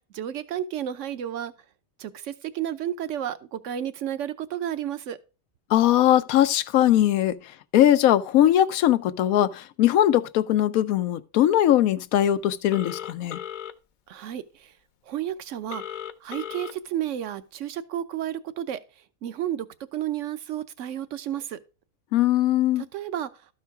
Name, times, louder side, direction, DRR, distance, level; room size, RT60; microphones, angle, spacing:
voice 1, 0.1-1.5 2.0-5.2 14.1-14.7 15.1-15.8 16.2-18.8 19.2-19.7 19.9-21.6 22.9-23.3, right 11 dB, 65° right, 1.0 m, -31 dB
voice 2, 5.7-7.3 7.7-13.4 22.1-22.8, left 12 dB, 85° left, 1.0 m, -20 dB
Telephone, 12.7-13.7 15.7-16.7, left 10 dB, 65° left, 0.4 m, -36 dB
12.5 x 4.6 x 4.6 m
omnidirectional pair, 1.4 m